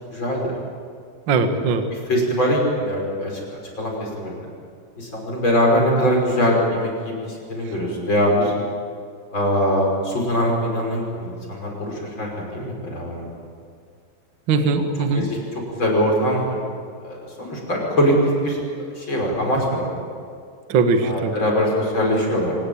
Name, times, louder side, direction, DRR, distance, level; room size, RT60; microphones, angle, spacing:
voice 1, 0.1-0.5 2.1-4.5 5.0-8.5 9.3-13.4 15.1-15.4 15.8-16.6 17.0-18.1 18.4-20.1 21.0-22.6, equal, 25° left, -1 dB, 6.1 m, -22 dB
voice 2, 1.3-1.8 14.5-15.3 20.7-21.3, right 4 dB, 60° right, 6 dB, 1.2 m, -20 dB
25.0 x 20.0 x 8.8 m, 2.2 s
omnidirectional pair, 5.1 m